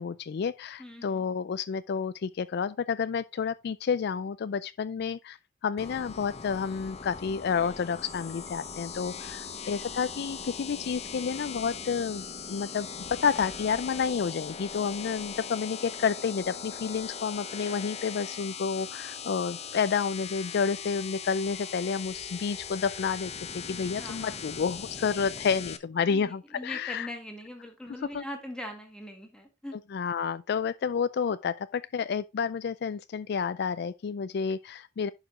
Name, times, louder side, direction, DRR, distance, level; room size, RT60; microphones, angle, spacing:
voice 1, 0.0-5.4 5.6-12.9 13.2-27.1 28.1-28.2 29.9-35.1, left 6 dB, 60° left, 0.4 m, -30 dB
voice 2, 0.8-1.2 9.4-9.6 23.7-24.4 26.1-29.8, left 1 dB, 5° left, 1.7 m, -42 dB
sound 1, 5.8-25.8, left 6 dB, 35° left, 0.9 m, -40 dB
11.0 x 4.9 x 3.7 m
head